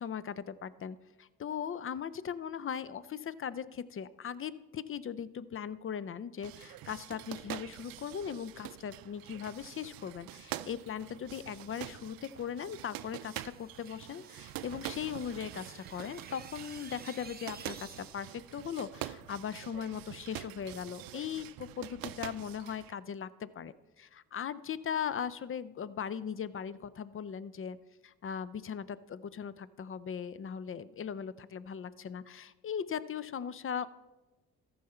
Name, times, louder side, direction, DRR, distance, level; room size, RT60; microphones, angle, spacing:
voice 1, 0.0-27.8 28.0-33.9, left 8 dB, 35° left, 17 dB, 0.5 m, -39 dB
sound 1, 6.4-22.9, right 14 dB, 75° right, 0.5 m, -45 dB
sound 2, 12.5-18.4, right 5 dB, 25° right, 0.8 m, -54 dB
14.0 x 5.6 x 4.3 m, 1.1 s
supercardioid pair, 50°, 36 cm